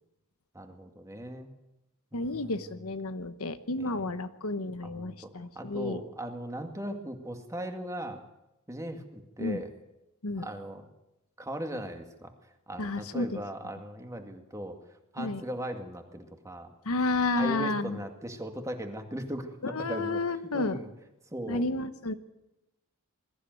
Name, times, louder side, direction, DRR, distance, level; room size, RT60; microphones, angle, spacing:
voice 1, 0.5-1.5 2.1-2.7 3.8-4.1 4.8-5.3 5.6-8.2 8.7-9.7 10.4-10.9 11.4-12.3 12.7-14.8 15.1-16.7 17.4-19.5 19.9-20.2 20.5-20.9 21.3-21.6, right 1 dB, 15° right, 5 dB, 2.1 m, -38 dB
voice 2, 2.1-6.0 9.4-9.6 10.2-10.5 12.8-13.3 15.2-15.4 16.8-18.0 19.6-20.8 21.5-22.1, left 2 dB, 75° left, 11 dB, 1.1 m, -31 dB
21.5 x 14.0 x 9.3 m, 0.94 s
head